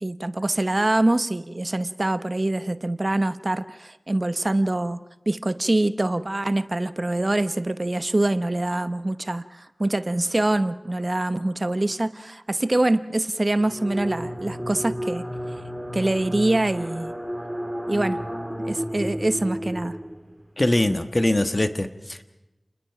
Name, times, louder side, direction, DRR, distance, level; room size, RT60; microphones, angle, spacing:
voice 1, 0.0-15.3 15.9-17.1 17.9-18.2 18.6-20.0, right 2 dB, 40° right, 13 dB, 0.8 m, -24 dB
sound 1, 13.5-20.4, equal, 5° right, 2.0 m, -32 dB
voice 2, 20.6-22.2, left 1 dB, 35° left, 9 dB, 1.4 m, -22 dB
29.0 x 21.0 x 5.9 m, 0.98 s
wide cardioid pair, 60°, 0 cm